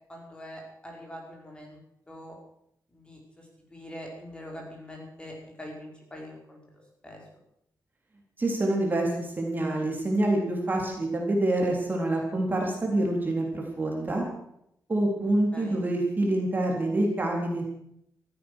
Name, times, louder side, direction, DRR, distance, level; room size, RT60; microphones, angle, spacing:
voice 1, 0.1-1.8 2.1-2.4 2.9-3.4 3.7-7.2 15.5-15.8, equal, 15° left, -1 dB, 5.1 m, -43 dB
voice 2, 8.4-14.2 14.9-17.7, right 1 dB, 25° right, 0 dB, 3.8 m, -26 dB
15.5 x 14.5 x 6.5 m, 0.75 s
wide cardioid pair, 140°, 7 cm